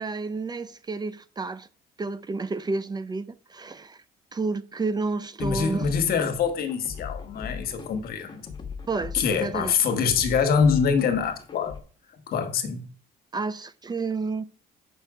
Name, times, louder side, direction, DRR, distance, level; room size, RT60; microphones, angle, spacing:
voice 1, 0.0-1.7 2.0-4.0 4.3-5.9 8.9-9.7 13.3-14.4, right 3 dB, 25° right, 0.6 m, -30 dB
voice 2, 5.4-8.5 9.1-11.8 12.3-12.9, left 6 dB, 65° left, 1.4 m, -24 dB
sound 1, 5.4-11.8, left 5 dB, 25° left, 1.5 m, -40 dB
7.4 x 5.5 x 4.9 m
cardioid pair, 110°, 17 cm